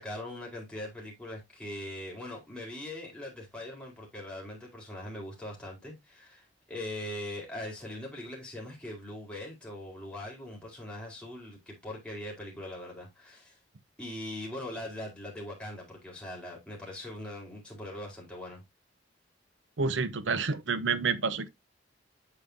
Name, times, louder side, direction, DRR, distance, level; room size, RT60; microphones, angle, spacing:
voice 1, 0.0-13.6 14.0-18.6, left 1 dB, 5° left, 4.3 m, -41 dB
voice 2, 19.8-21.5, right 4 dB, 85° right, 0.8 m, -29 dB
8.6 x 6.9 x 2.7 m
head